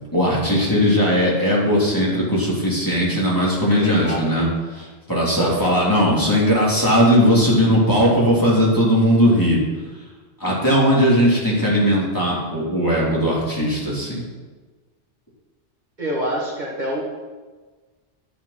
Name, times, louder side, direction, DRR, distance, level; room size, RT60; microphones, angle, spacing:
voice 1, 0.1-4.5 4.8-9.6 10.4-14.2, equal, 15° left, -6 dB, 3.1 m, -18 dB
voice 2, 3.7-4.7 5.4-5.9 16.0-17.2, equal, 40° right, -3 dB, 1.7 m, -27 dB
11.0 x 7.4 x 5.8 m, 1.3 s
omnidirectional pair, 1.2 m